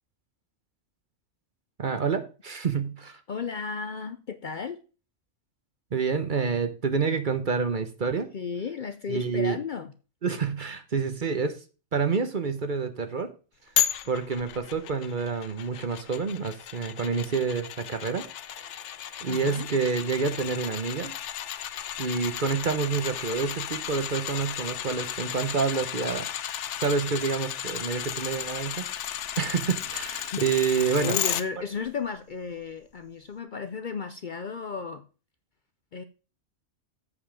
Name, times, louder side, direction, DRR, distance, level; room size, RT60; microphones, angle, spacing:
voice 1, 1.8-3.2 5.9-8.3 9.1-9.6 10.2-11.6 11.9-13.3 14.1-18.3 18.6-18.7 19.2-21.1 22.0-26.3 26.8-31.2, right 5 dB, 45° right, 0.9 m, -28 dB
voice 2, 3.3-4.8 8.3-9.9 19.3-19.7 30.3-30.4 31.0-35.0 35.9-36.0, left 5 dB, 50° left, 0.6 m, -34 dB
sound 1, 13.8-31.4 31.9-32.0, left 10 dB, 75° left, 1.0 m, -34 dB
8.3 x 5.4 x 5.1 m
omnidirectional pair, 1.3 m